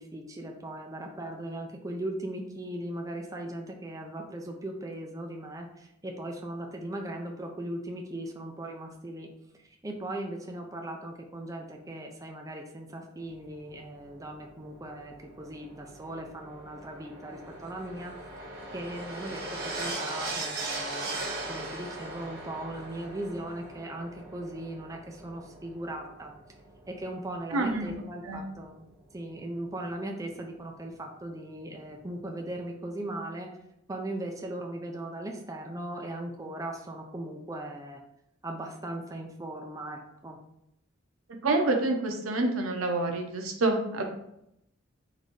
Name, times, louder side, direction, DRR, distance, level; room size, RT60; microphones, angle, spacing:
voice 1, 0.0-9.3 9.6-18.5 18.7-26.3 26.9-28.8 29.1-33.5 33.9-38.0 38.4-40.4, right 1 dB, 15° right, 1 dB, 0.4 m, -38 dB
sound 1, 13.2-29.6 30.6-30.7, right 2 dB, 50° right, 0.9 m, -40 dB
voice 2, 27.5-27.9 28.2-28.4 41.4-44.0, right 2 dB, 85° right, 3 dB, 0.8 m, -27 dB
4.0 x 2.6 x 4.6 m, 0.80 s
head